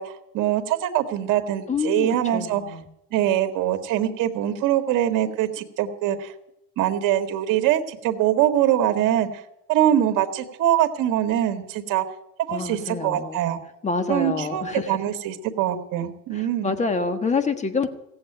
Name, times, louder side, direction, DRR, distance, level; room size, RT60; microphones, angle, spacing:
voice 1, 0.0-2.8 3.1-6.3 6.8-9.3 9.7-12.0 12.5-13.6 14.1-16.8, right 11 dB, 60° right, 6 dB, 1.8 m, -23 dB
voice 2, 1.7-2.9 12.5-13.4 13.8-15.0 16.3-17.9, left 4 dB, 20° left, 9 dB, 1.4 m, -27 dB
17.0 x 7.7 x 9.0 m, 0.84 s
cardioid pair, 135°, 35 cm